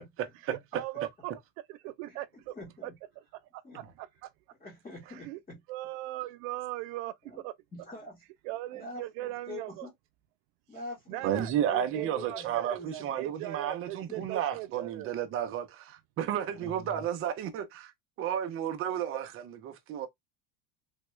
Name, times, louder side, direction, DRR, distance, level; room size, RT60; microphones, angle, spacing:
voice 1, 0.4-1.3 1.7-2.5 2.8-2.9 3.5-4.3 5.2-5.4 5.7-7.5 8.4-9.9 11.1-11.5 11.9-15.3, right 16 dB, 80° right, 0.6 m, -39 dB
voice 2, 1.8-2.2 2.5-2.9 3.6-3.8 4.6-5.6 7.2-7.4 7.7-8.2 8.7-9.9 10.7-13.2 14.1-14.3 16.5-17.0, left 2 dB, 15° left, 0.9 m, -45 dB
voice 3, 11.2-17.9 18.2-20.1, right 10 dB, 30° right, 0.5 m, -32 dB
3.5 x 2.2 x 3.0 m
cardioid pair, 165°, 43 cm